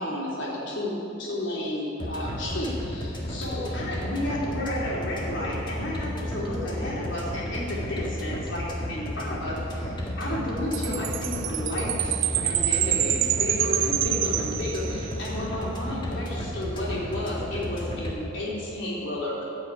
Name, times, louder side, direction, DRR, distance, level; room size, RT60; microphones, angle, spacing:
voice 1, 0.0-19.4, left 1 dB, 65° left, -5 dB, 3.7 m, -32 dB
sound 1, 2.0-18.1, equal, 25° left, 1.9 m, -33 dB
Chime, 10.7-15.2, right 13 dB, 70° right, 0.5 m, -27 dB
14.0 x 6.3 x 8.8 m, 2.8 s
head